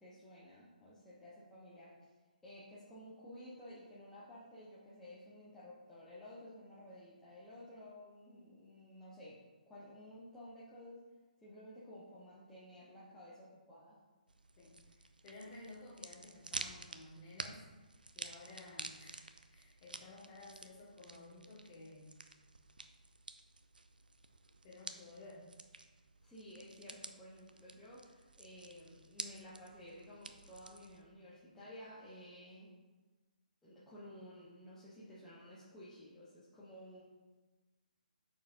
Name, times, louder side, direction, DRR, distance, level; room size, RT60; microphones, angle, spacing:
voice 1, 0.0-1.9 2.4-9.4 9.7-11.0 11.4-14.0 26.2-32.7 33.6-37.0, left 1 dB, 5° left, -10 dB, 1.0 m, -54 dB
sound 1, 14.3-31.0, right 3 dB, 75° right, 0.5 m, -50 dB
voice 2, 15.2-17.6 18.1-22.2 24.6-25.5, left 2 dB, 25° left, -5 dB, 1.7 m, -54 dB
8.9 x 4.6 x 2.6 m, 1.2 s
figure-of-eight pair, 135°, 5 cm